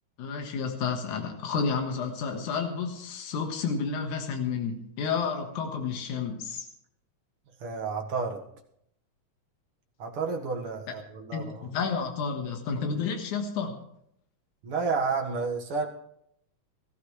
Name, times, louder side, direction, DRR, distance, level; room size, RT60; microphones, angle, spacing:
voice 1, 0.2-6.7 11.3-13.7, left 5 dB, 75° left, 3 dB, 3.0 m, -31 dB
voice 2, 7.6-8.4 10.0-11.7 14.6-15.9, right 4 dB, 50° right, 2 dB, 2.3 m, -31 dB
20.5 x 14.5 x 3.3 m, 0.73 s
omnidirectional pair, 3.4 m